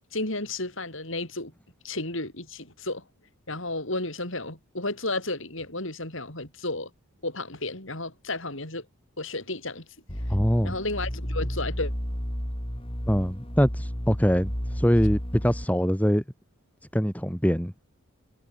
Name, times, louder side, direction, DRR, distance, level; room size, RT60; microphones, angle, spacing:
voice 1, 0.1-1.5 1.8-3.0 3.5-6.9 7.2-8.9 9.2-9.8 10.6-11.9, left 2 dB, 60° left, 7.3 m, -32 dB
sound 1, 10.1-15.6, equal, 25° left, 4.3 m, -32 dB
voice 2, 10.3-10.7 13.1-16.2 16.9-17.7, equal, 5° left, 2.8 m, -23 dB
head